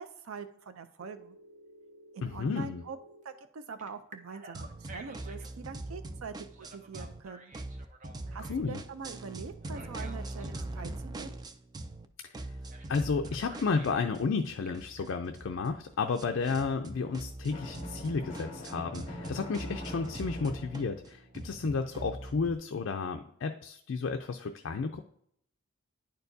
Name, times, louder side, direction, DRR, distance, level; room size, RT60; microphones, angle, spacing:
voice 1, 0.0-1.4 2.1-3.0 3.2-7.6 8.3-11.4, right 5 dB, 80° right, 10 dB, 0.5 m, -44 dB
Telephone, 1.0-3.2 3.8-5.5 6.5-8.8 9.6-10.9 12.7-12.9 13.2-14.0 14.5-15.0, right 2 dB, 35° right, 0.7 m, -53 dB
voice 2, 2.2-2.8 8.4-8.8 12.2-12.3 12.9-25.0, left 4 dB, 60° left, 6 dB, 0.4 m, -32 dB
sound 1, 4.5-7.2 7.5-12.1 12.3-22.5, right 2 dB, 20° right, 0.3 m, -43 dB
Drum, 17.5-21.3, left 1 dB, 30° left, 1.5 m, -43 dB
10.0 x 4.5 x 2.6 m, 0.70 s
head